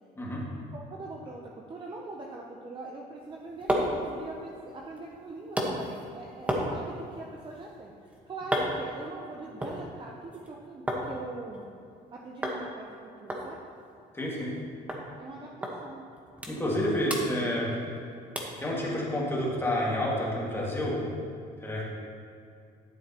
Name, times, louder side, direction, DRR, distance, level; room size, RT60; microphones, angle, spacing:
voice 1, 0.7-11.6 12.1-13.6 15.2-16.0, right 3 dB, 30° right, -1 dB, 0.8 m, -42 dB
sound 1, 3.2-11.1 11.4-12.1 12.4-12.6 12.9-13.0 13.3-14.6 14.9-15.0 15.6-15.8 16.1-16.8 17.1-18.0 18.4-18.6 19.1-19.2, equal, 10° right, 1.3 m, -34 dB
voice 2, 14.1-14.5 16.5-17.7 18.6-21.0 21.6-21.8, left 1 dB, 15° left, -5 dB, 2.2 m, -29 dB
12.0 x 7.1 x 3.0 m, 2.5 s
cardioid pair, 110°, 17 cm